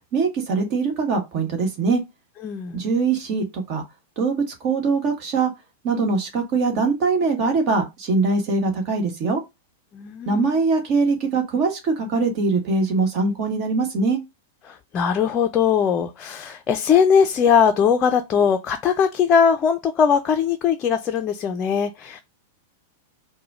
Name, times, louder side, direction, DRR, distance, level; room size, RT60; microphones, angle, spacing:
voice 1, 0.1-2.0 2.7-3.8 4.2-4.3 4.6-5.5 5.8-9.4 10.3-14.2, right 4 dB, 40° right, 1.5 m, -22 dB
voice 2, 2.4-2.8 9.9-10.6 14.6-22.2, left 7 dB, 30° left, 0.5 m, -20 dB
4.7 x 2.2 x 4.8 m
figure-of-eight pair, 95°, 0 cm